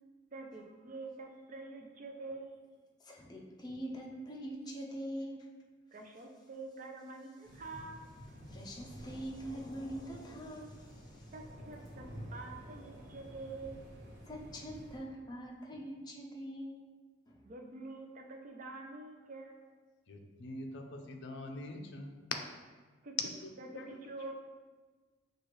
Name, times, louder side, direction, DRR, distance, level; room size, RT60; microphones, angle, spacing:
voice 1, 0.3-2.7 5.9-8.0 11.3-13.9 17.4-19.7 23.0-23.1 23.6-24.3, right 3 dB, 45° right, 2 dB, 0.5 m, -46 dB
voice 2, 3.0-5.5 8.5-11.3 14.3-16.8 17.3-17.5, equal, 20° left, -2 dB, 0.6 m, -44 dB
sound 1, 7.4-15.0, equal, 60° right, 1.2 m, -50 dB
voice 3, 20.1-22.4 23.2-24.3, left 4 dB, 65° left, 3 dB, 0.5 m, -42 dB
6.1 x 2.4 x 3.1 m, 1.4 s
head